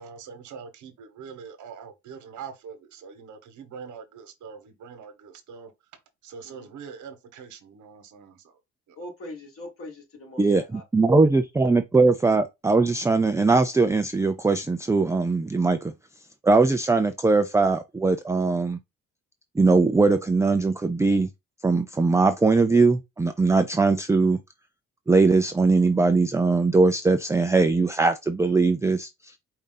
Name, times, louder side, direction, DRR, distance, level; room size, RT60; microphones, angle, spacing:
voice 1, 0.0-5.7 6.2-8.6 8.9-9.0, right 6 dB, 75° right, 1.2 m, -43 dB
voice 2, 9.0-10.8, left 1 dB, 50° left, 2.7 m, -41 dB
voice 3, 10.4-15.9 16.4-18.8 19.6-21.3 21.6-24.4 25.1-29.3, right 3 dB, 10° right, 0.4 m, -21 dB
4.8 x 2.7 x 3.8 m
cardioid pair, 90°, 30 cm